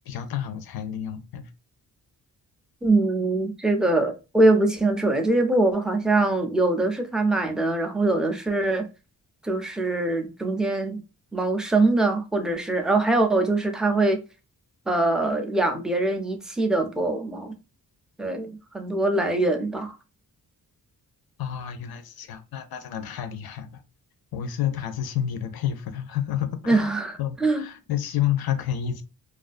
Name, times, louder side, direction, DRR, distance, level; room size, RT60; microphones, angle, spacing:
voice 1, 0.1-1.5 21.4-23.7 24.3-26.9 27.2-29.0, left 10 dB, 75° left, 0.5 m, -29 dB
voice 2, 2.8-8.9 9.4-11.0 11.3-14.2 14.9-17.5 18.2-20.0 26.7-27.7, right 2 dB, ahead, 0.3 m, -23 dB
2.4 x 2.3 x 2.4 m
wide cardioid pair, 125°, 37 cm